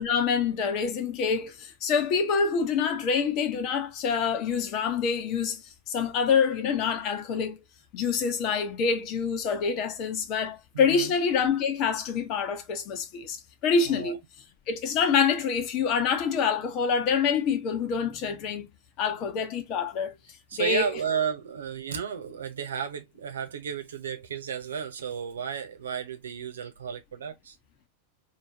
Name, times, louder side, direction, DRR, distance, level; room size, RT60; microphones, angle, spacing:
voice 1, 0.0-7.6 7.9-14.2 14.7-18.7 19.0-20.1 20.6-20.9, left 6 dB, 40° left, 1.1 m, -26 dB
voice 2, 10.7-11.1 13.9-14.2 20.5-27.5, right 7 dB, 65° right, 1.1 m, -33 dB
4.8 x 3.0 x 2.9 m
figure-of-eight pair, 90°, 0 cm